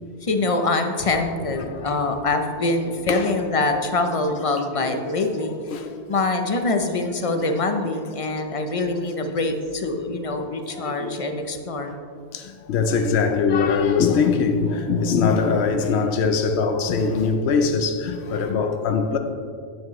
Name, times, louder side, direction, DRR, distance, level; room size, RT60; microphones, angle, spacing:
voice 1, 0.2-5.5 6.1-11.9, left 2 dB, 40° left, 0.6 m, -24 dB
voice 2, 1.6-1.9 3.1-3.5 4.8-4.9 5.7-6.0 7.3-7.5 10.7-11.2 12.3-19.2, left 5 dB, 90° left, 0.9 m, -22 dB
9.5 x 8.2 x 3.1 m
omnidirectional pair, 1.1 m